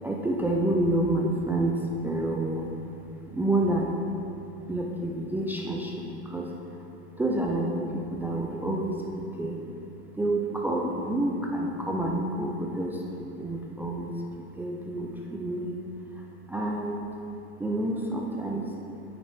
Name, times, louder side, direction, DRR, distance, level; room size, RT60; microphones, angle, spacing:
voice 1, 0.0-2.8 3.3-4.0 4.7-6.7 7.2-9.6 10.2-15.8 16.1-17.1 17.6-18.7, right 1 dB, 5° right, -1 dB, 0.3 m, -29 dB
8.9 x 6.9 x 3.5 m, 2.7 s
hypercardioid pair, 115°, 37 cm